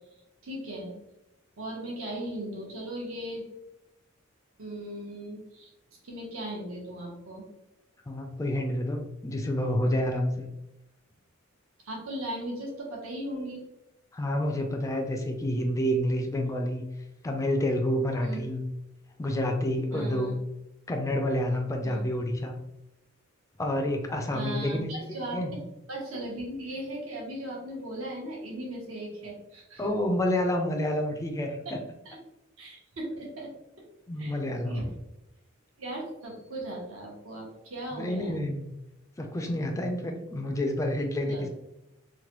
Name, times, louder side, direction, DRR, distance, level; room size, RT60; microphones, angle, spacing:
voice 1, 0.4-0.9 1.6-3.4 4.6-5.7 6.0-7.5 11.8-13.6 18.2-18.4 19.9-20.3 21.8-22.0 24.3-25.6 25.9-29.9 31.6-31.7 32.0-32.2 32.6-33.5 34.2-34.4 34.6-34.9 35.8-38.4 41.2-41.4, right 1 dB, 80° right, -3 dB, 0.9 m, -37 dB
voice 2, 8.1-10.4 14.1-16.8 17.2-18.6 19.2-20.4 20.9-22.6 23.6-24.9 25.3-25.5 29.8-31.8 34.1-34.9 37.9-38.7 39.2-41.5, left 1 dB, 15° left, 3 dB, 0.3 m, -28 dB
3.1 x 2.1 x 2.9 m, 0.90 s
head